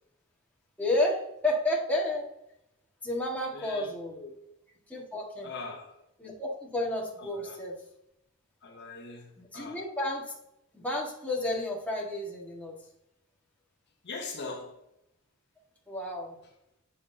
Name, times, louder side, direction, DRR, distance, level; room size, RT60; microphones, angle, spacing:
voice 1, 0.8-2.3 3.0-4.1 4.9-5.5 6.2-7.8 9.4-10.3 10.7-12.8 15.9-16.4, left 1 dB, 5° left, 1.6 m, -31 dB
voice 2, 3.5-4.4 5.4-5.9 7.2-7.6 8.6-9.8 14.0-14.8, left 3 dB, 55° left, 0.9 m, -41 dB
7.5 x 5.9 x 2.7 m
head